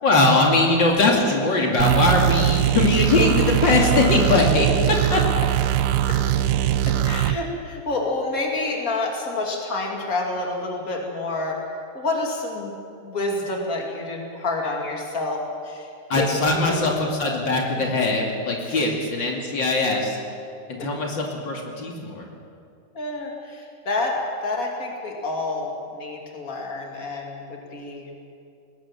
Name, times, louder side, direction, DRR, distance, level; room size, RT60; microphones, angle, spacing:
voice 1, 0.0-4.7 5.1-5.2 16.1-20.2 20.7-22.3, left 2 dB, 80° left, -1 dB, 3.3 m, -21 dB
sound 1, 1.8-7.4, right 12 dB, 90° right, 1.4 m, -21 dB
voice 2, 6.9-11.6 11.9-12.7 13.0-15.9 16.2-16.9 18.6-19.0 20.8-20.9 22.9-28.1, left 2 dB, 50° left, 0 dB, 3.1 m, -28 dB
21.0 x 19.0 x 7.3 m, 2.5 s
omnidirectional pair, 2.0 m